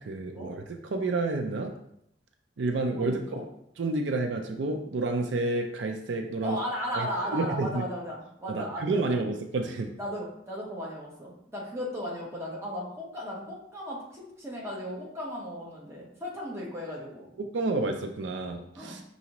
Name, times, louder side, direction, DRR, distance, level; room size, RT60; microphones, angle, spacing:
voice 1, 0.0-1.7 2.6-3.2 3.8-6.6 6.9-7.1 7.3-7.8 8.5-9.9 17.4-19.0, right 3 dB, 80° right, 4 dB, 0.5 m, -30 dB
voice 2, 2.9-3.4 6.4-9.2 10.0-17.3 18.7-19.0, equal, 15° right, -4 dB, 1.0 m, -36 dB
5.7 x 2.7 x 2.9 m, 0.75 s
head